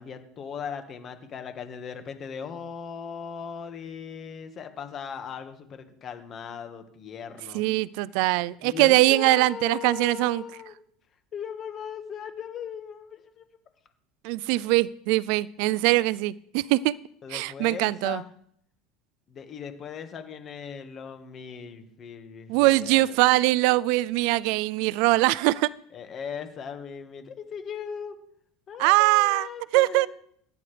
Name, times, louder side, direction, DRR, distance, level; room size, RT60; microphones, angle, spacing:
voice 1, 0.0-7.6 8.6-10.7 11.3-13.5 17.2-18.3 19.3-23.2 25.9-28.1 28.7-30.1, left 7 dB, 35° left, 7 dB, 1.6 m, -38 dB
voice 2, 7.5-10.4 14.2-16.9 17.3-18.2 22.5-25.7 28.8-29.5 29.7-30.1, right 19 dB, 70° right, 21 dB, 0.3 m, -22 dB
15.5 x 9.8 x 3.4 m, 0.68 s
supercardioid pair, 130°, 0 cm